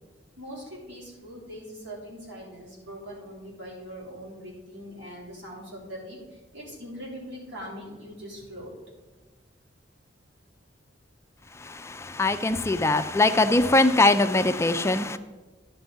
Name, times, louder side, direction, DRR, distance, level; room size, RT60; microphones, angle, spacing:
voice 1, 0.4-6.2 6.5-8.7, equal, 75° right, -5 dB, 3.6 m, -41 dB
voice 2, 11.6-15.2, left 2 dB, 15° left, 9 dB, 0.4 m, -22 dB
11.0 x 5.3 x 5.6 m, 1.2 s
head